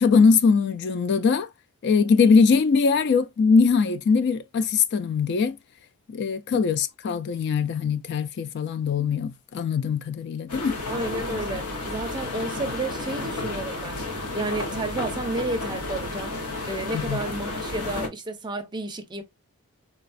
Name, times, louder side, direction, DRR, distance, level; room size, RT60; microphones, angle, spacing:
voice 1, 0.0-1.5 1.8-5.6 6.1-10.8 16.9-17.2, left 5 dB, 50° left, 0.3 m, -21 dB
sound 1, 10.5-18.1, left 2 dB, 85° left, 0.9 m, -32 dB
voice 2, 10.9-14.0 14.3-16.3 16.7-19.2, right 2 dB, 20° right, 0.5 m, -31 dB
4.0 x 2.3 x 2.4 m
head